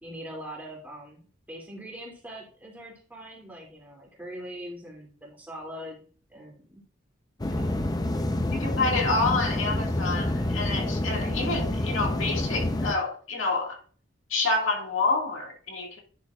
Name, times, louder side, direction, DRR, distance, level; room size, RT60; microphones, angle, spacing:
voice 1, 0.0-6.0 6.3-6.8 7.5-7.8 11.1-11.4, equal, 10° right, 2.4 m, -42 dB
sound 1, 7.4-12.9, left 1 dB, 20° left, 0.6 m, -28 dB
voice 2, 8.5-13.8 14.3-16.0, left 3 dB, 80° left, 1.8 m, -28 dB
10.0 x 6.3 x 2.3 m
head